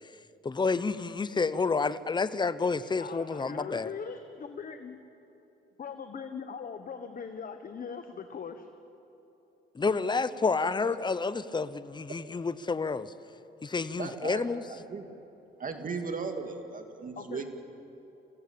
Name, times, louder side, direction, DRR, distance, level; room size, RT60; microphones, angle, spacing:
voice 1, 0.4-3.9 9.7-13.1 13.6-14.6, left 4 dB, 20° left, 14 dB, 0.9 m, -29 dB
voice 2, 3.0-5.0 5.8-8.7 17.2-17.4, left 6 dB, 45° left, 8 dB, 1.3 m, -40 dB
voice 3, 10.7-11.0 14.0-14.4 14.7-15.0 15.6-17.4, right 5 dB, 40° right, 5 dB, 2.4 m, -37 dB
27.0 x 16.5 x 8.6 m, 3.0 s
cardioid pair, 90°, 20 cm